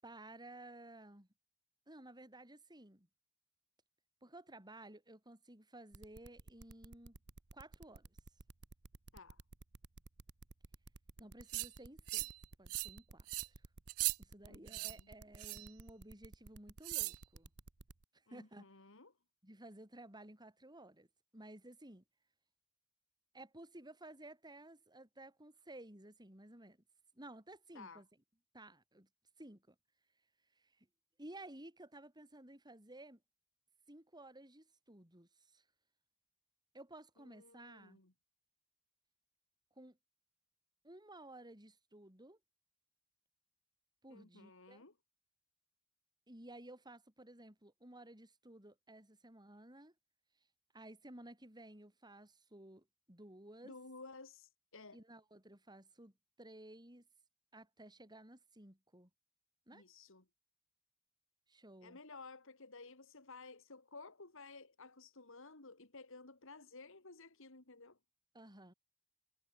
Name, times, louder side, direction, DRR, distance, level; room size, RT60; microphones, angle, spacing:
voice 1, 0.0-1.3 1.9-3.1 4.2-7.2 7.5-8.1 11.2-12.3 12.6-13.5 14.2-17.5 18.1-18.7 19.4-21.1 21.3-22.0 23.3-26.8 27.1-28.1 28.5-29.1 29.4-29.7 30.6-30.9 31.2-33.2 33.9-35.6 36.7-38.0 39.8-40.0 40.8-42.4 44.0-44.8 46.3-49.9 50.7-53.8 54.9-56.1 56.4-57.1 57.5-59.1 59.7-59.8 61.5-62.0 68.3-68.7, right 1 dB, 20° right, 6.3 m, -55 dB
sound 1, 5.9-18.0, right 2 dB, 55° right, 1.2 m, -55 dB
sound 2, 11.5-11.7 12.1-12.4 12.7-13.0 13.3-13.5 13.9-14.2 14.7-14.9 15.4-15.7 16.8-17.2, right 22 dB, 80° right, 0.4 m, -38 dB
voice 2, 14.4-15.1 18.3-19.1 27.7-28.0 37.2-38.1 44.1-45.0 53.6-55.0 59.7-60.3 61.8-68.0, left 3 dB, 65° left, 2.7 m, -55 dB
head